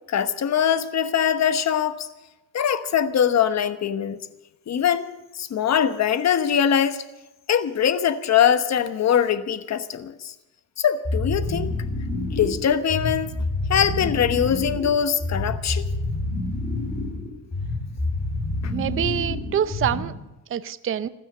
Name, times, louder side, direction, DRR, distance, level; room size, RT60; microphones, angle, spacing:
voice 1, 0.1-2.1 2.5-4.2 4.7-5.1 5.3-7.0 7.5-10.3 10.8-11.7 12.3-13.3 13.7-15.9 18.6-18.7, left 8 dB, 40° left, 11 dB, 1.2 m, -22 dB
sound 1, 11.0-20.3, left 2 dB, 20° left, 2.4 m, -28 dB
voice 2, 18.7-20.1 20.5-21.1, right 10 dB, 30° right, 14 dB, 0.6 m, -26 dB
16.0 x 12.5 x 6.7 m, 1.0 s
cardioid pair, 110°, 42 cm